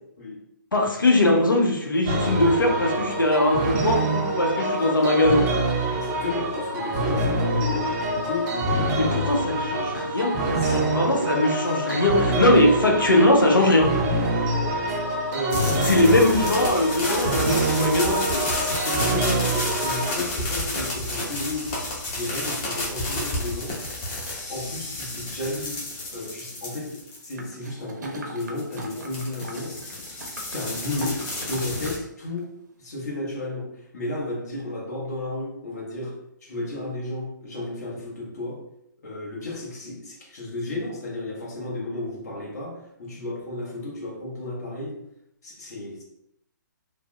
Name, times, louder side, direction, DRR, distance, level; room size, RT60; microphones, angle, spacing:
voice 1, 0.7-5.6 9.0-10.4 10.6-14.1 15.9-18.4, left 1 dB, 90° left, 2 dB, 0.7 m, -21 dB
sound 1, 2.1-20.1, right 1 dB, 20° right, 0.4 m, -26 dB
voice 2, 5.9-9.1 10.6-10.9 14.8-15.0 15.3-16.1 18.0-21.7 22.1-23.8 24.5-25.8 26.1-29.8 30.5-32.5 32.8-38.6 39.0-45.0 45.4-46.0, left 2 dB, 55° left, -4 dB, 1.1 m, -33 dB
sound 2, 15.5-27.5 28.4-32.0, left 1 dB, 25° left, 0.7 m, -31 dB
sound 3, 27.4-32.0 32.4-32.5, right 2 dB, 65° right, 0.6 m, -41 dB
3.3 x 2.0 x 2.2 m, 0.77 s
figure-of-eight pair, 140°, 11 cm